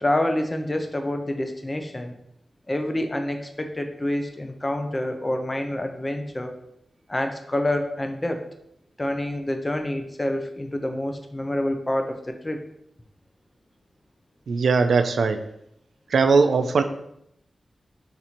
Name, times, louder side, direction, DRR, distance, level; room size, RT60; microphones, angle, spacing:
voice 1, 0.0-2.2 2.7-6.6 7.1-8.5 9.0-12.6, left 1 dB, 20° left, 5 dB, 0.4 m, -27 dB
voice 2, 14.5-15.4 16.1-16.8, right 4 dB, 85° right, 8 dB, 0.3 m, -19 dB
4.3 x 2.5 x 4.1 m, 0.76 s
wide cardioid pair, 180°, 0 cm